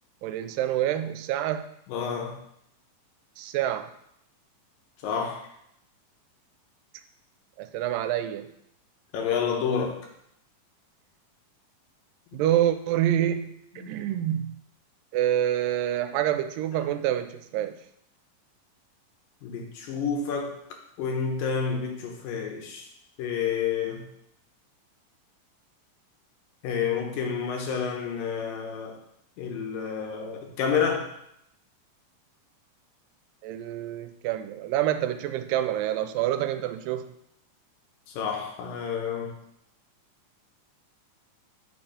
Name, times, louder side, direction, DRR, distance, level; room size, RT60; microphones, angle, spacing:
voice 1, 0.2-1.7 3.4-3.9 7.6-8.5 12.3-14.6 15.1-17.8 33.4-37.1, right 12 dB, 85° right, 10 dB, 2.2 m, -27 dB
voice 2, 1.9-2.4 5.0-5.5 9.1-10.1 13.8-13.9 19.4-20.5 21.0-22.9 23.2-24.1 26.6-29.0 29.4-31.1 38.1-39.3, left 6 dB, 80° left, 2 dB, 2.7 m, -29 dB
5.6 x 4.4 x 4.9 m, 0.74 s
omnidirectional pair, 3.9 m